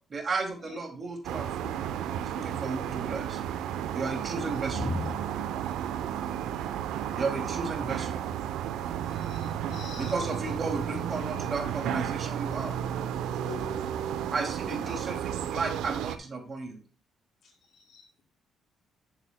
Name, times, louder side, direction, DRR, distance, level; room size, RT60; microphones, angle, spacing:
voice 1, 0.1-1.8 2.2-3.4 3.9-4.8 7.1-8.2 10.0-12.8 14.3-16.8, right 3 dB, 40° right, 3 dB, 2.5 m, -34 dB
sound 1, 1.2-16.2, right 9 dB, 90° right, 0.7 m, -33 dB
voice 2, 4.7-5.8 9.0-10.4 14.8-15.0 17.7-18.1, left 3 dB, 80° left, 0 dB, 3.7 m, -39 dB
voice 3, 5.9-6.3 13.3-14.0 17.4-17.5, left 6 dB, 60° left, -2 dB, 4.4 m, -46 dB
10.5 x 7.9 x 2.2 m, 0.37 s
cardioid pair, 90°, 0 cm